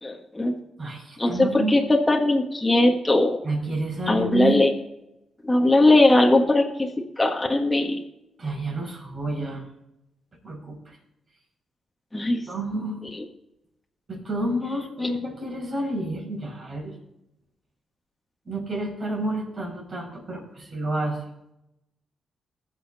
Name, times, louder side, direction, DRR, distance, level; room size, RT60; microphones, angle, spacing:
voice 1, 0.0-0.6 1.2-3.4 4.1-4.7 5.4-6.9 7.2-8.0 12.1-12.4, left 2 dB, 15° left, 1 dB, 1.5 m, -20 dB
voice 2, 0.8-1.8 3.4-4.6 8.4-9.6 10.4-11.0 12.5-13.0 14.1-16.9 18.5-21.2, right 2 dB, 45° right, 0 dB, 5.3 m, -29 dB
19.5 x 6.8 x 4.1 m, 0.87 s
cardioid pair, 75°, 0 cm